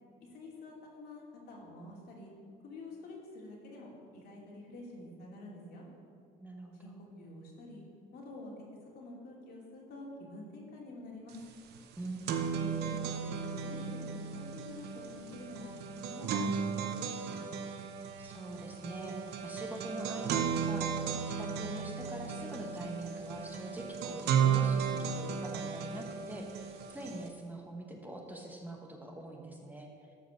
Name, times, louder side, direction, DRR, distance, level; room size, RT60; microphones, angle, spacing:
voice 1, 0.3-2.3 2.6-5.8 6.8-7.8 8.1-8.5 8.9-11.4 12.5-15.8 16.0-17.4, left 2 dB, 70° left, -2 dB, 2.8 m, -48 dB
voice 2, 6.4-7.0 12.0-12.5 18.2-29.9, right 1 dB, 10° right, 1 dB, 1.3 m, -44 dB
sound 1, 11.3-11.4 11.7-27.3, right 7 dB, 75° right, 0.9 m, -35 dB
12.5 x 5.1 x 6.3 m, 2.4 s
cardioid pair, 110°, 17 cm